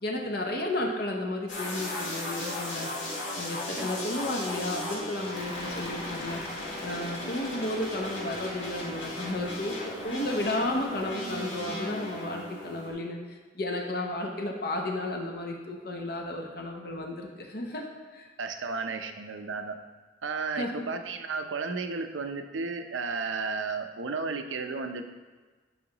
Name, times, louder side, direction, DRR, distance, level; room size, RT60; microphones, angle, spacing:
voice 1, 0.0-2.9 3.4-17.8 18.1-18.3 20.6-20.8, left 1 dB, 55° left, 1 dB, 0.8 m, -33 dB
sound 1, 1.5-12.9, left 1 dB, 80° left, 2.1 m, -36 dB
voice 2, 18.4-19.7 20.2-25.0, right 4 dB, 85° right, 7 dB, 0.6 m, -33 dB
11.0 x 5.7 x 2.9 m, 1.3 s
head